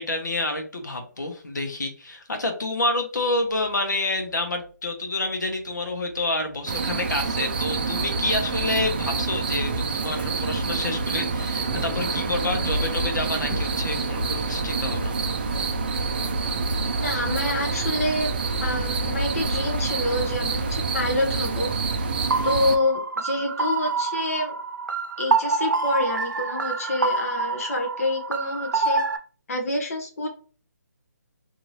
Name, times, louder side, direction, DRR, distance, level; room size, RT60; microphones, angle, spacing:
voice 1, 0.0-16.0, left 2 dB, 80° left, 5 dB, 0.9 m, -28 dB
sound 1, 6.7-22.8, right 4 dB, 35° right, 0.4 m, -27 dB
Thunder / Rain, 10.9-17.3, left 2 dB, 15° left, 0.6 m, -40 dB
voice 2, 17.0-21.7 22.4-24.6 25.2-29.0 29.5-30.3, left 1 dB, 50° left, 2 dB, 0.7 m, -27 dB
sound 2, 22.3-29.2, right 3 dB, 85° right, 0.6 m, -26 dB
2.7 x 2.6 x 3.1 m, 0.39 s
hypercardioid pair, 165°, 10 cm